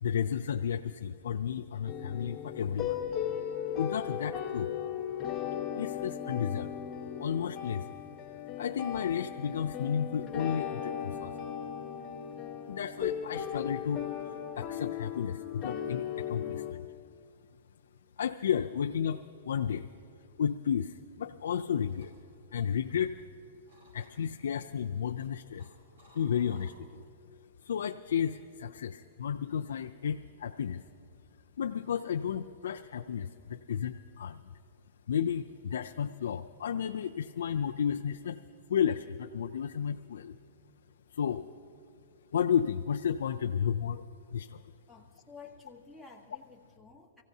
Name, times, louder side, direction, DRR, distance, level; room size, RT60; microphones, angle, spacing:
voice 1, 0.0-3.0 3.8-4.7 5.7-6.8 7.2-8.0 8.6-11.4 12.7-16.9 18.2-19.9 20.4-22.1 22.5-23.1 23.9-25.7 26.1-27.0 27.6-30.8 31.6-34.5 35.1-38.4 38.7-40.4 41.1-41.5 42.3-44.0 44.3-44.6, left 8 dB, 90° left, 6 dB, 0.3 m, -32 dB
sound 1, 1.9-16.7, left 9 dB, 25° left, 1.0 m, -37 dB
sound 2, 21.7-23.3 23.6-24.4 24.9-27.2 27.5-27.9, right 1 dB, 80° right, 4.2 m, -61 dB
voice 2, 44.9-47.2, left 4 dB, ahead, -4 dB, 1.3 m, -52 dB
25.5 x 15.5 x 2.7 m, 2.6 s
hypercardioid pair, 150°, 0 cm